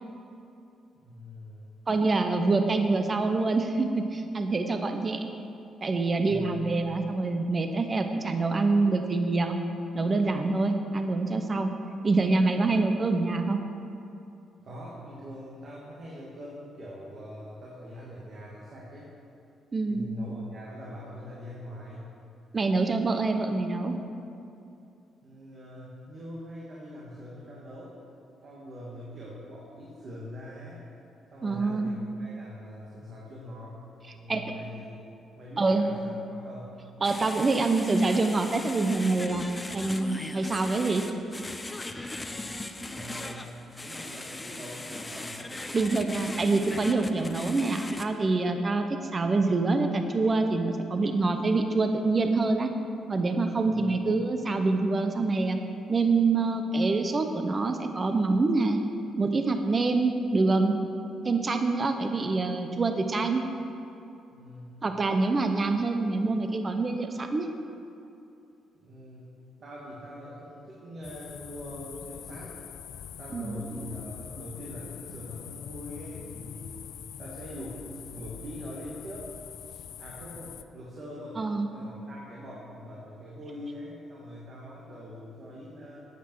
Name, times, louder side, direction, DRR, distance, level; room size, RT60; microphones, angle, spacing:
voice 1, 1.0-1.7 6.2-6.7 14.6-19.1 19.9-22.0 25.2-27.9 28.4-30.8 31.3-33.8 34.1-36.8 42.9-45.4 53.6-54.1 64.3-64.8 68.7-69.2 69.6-72.6 73.2-76.8 77.2-79.3 80.0-86.1, equal, 50° right, -5 dB, 1.8 m, -43 dB
voice 2, 1.9-5.3 5.8-9.6 9.9-11.7 12.0-13.6 19.7-20.0 22.5-24.0 31.4-31.9 34.3-34.5 35.6-35.9 37.0-39.4 39.7-41.0 45.7-48.9 49.1-52.7 53.1-55.6 55.9-58.8 59.2-60.8 61.2-63.4 64.8-67.5 73.3-73.6 81.4-81.7, right 3 dB, 35° right, 6 dB, 0.7 m, -26 dB
sound 1, 37.0-48.0, left 2 dB, 15° left, 0.6 m, -38 dB
sound 2, 71.0-80.6, left 9 dB, 75° left, 0.4 m, -44 dB
10.0 x 8.4 x 4.7 m, 2.7 s
cardioid pair, 90°, 0 cm